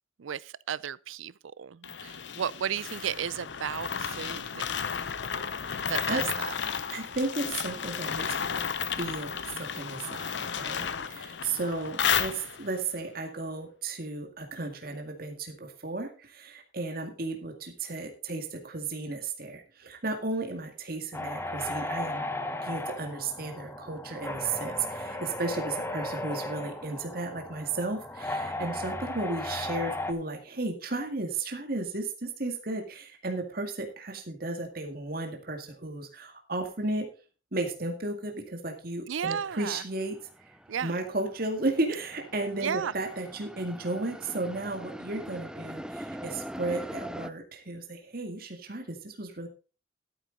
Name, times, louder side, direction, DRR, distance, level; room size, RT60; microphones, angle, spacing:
voice 1, 0.2-4.7 5.9-6.8 39.1-39.8 40.7-40.9 42.6-42.9, right 8 dB, 85° right, 0.5 m, -34 dB
sound 1, 1.8-12.8, left 7 dB, 65° left, 0.7 m, -33 dB
voice 2, 6.9-8.6 9.0-22.3 22.6-37.1 37.5-40.2 40.8-49.5, right 2 dB, 50° right, 2.0 m, -34 dB
sound 2, 21.1-30.1, left 1 dB, 10° left, 1.0 m, -35 dB
sound 3, 39.5-39.6 39.9-47.3, equal, 5° right, 0.5 m, -42 dB
13.0 x 8.9 x 4.0 m
head